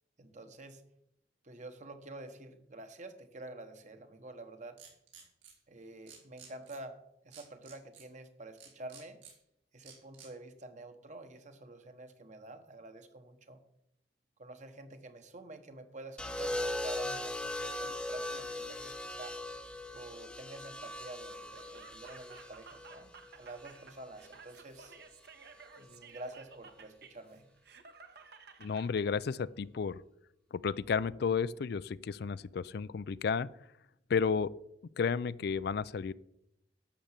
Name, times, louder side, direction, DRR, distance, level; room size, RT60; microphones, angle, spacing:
voice 1, 0.2-0.8 1.4-4.8 5.7-9.2 9.7-13.6 14.4-19.4 19.9-25.0 25.8-27.5, right 2 dB, 45° right, 8 dB, 1.2 m, -48 dB
sound 1, 4.8-5.5 6.1-6.8 7.3-8.0 8.6-9.3 9.8-10.3, right 7 dB, 80° right, 4.2 m, -53 dB
sound 2, 16.2-24.3 25.6-25.9, left 1 dB, 5° left, 0.7 m, -40 dB
Laughter, 21.4-29.1, right 5 dB, 65° right, 1.2 m, -55 dB
voice 2, 28.6-30.0 30.5-33.5 34.1-34.5 35.0-36.1, left 6 dB, 60° left, 18 dB, 0.4 m, -32 dB
12.0 x 6.8 x 7.4 m, 0.82 s
head